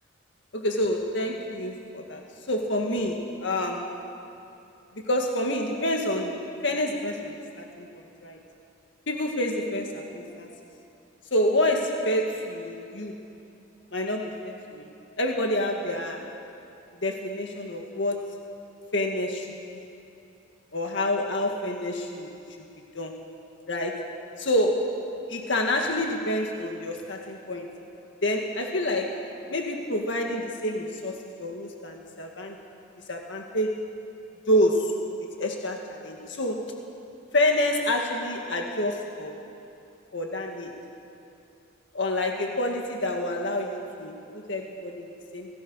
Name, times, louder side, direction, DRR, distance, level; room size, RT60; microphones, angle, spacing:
voice 1, 0.5-2.2 2.5-3.9 5.1-8.4 9.1-10.5 11.3-13.1 13.9-14.9 15.2-16.2 17.0-18.4 18.9-19.8 20.7-22.3 22.9-23.2 23.7-24.1 24.4-25.0 25.3-27.7 28.2-29.2 29.5-32.6 33.1-33.8 34.5-34.9 35.2-36.7 37.3-39.4 40.1-40.7 41.9-45.5, left 1 dB, 60° left, 2 dB, 2.0 m, -28 dB
27.0 x 18.5 x 6.4 m, 2.8 s
head